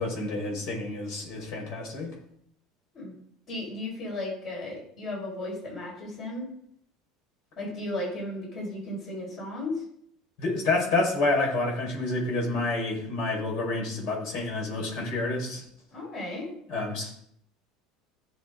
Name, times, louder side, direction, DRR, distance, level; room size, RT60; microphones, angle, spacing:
voice 1, 0.0-2.1 10.4-15.6 16.7-17.2, left 2 dB, 60° left, -1 dB, 5.3 m, -28 dB
voice 2, 3.5-6.5 7.6-9.8 15.9-16.5, left 1 dB, 40° left, -2 dB, 5.3 m, -35 dB
16.0 x 7.1 x 3.9 m, 0.69 s
cardioid pair, 150°, 0 cm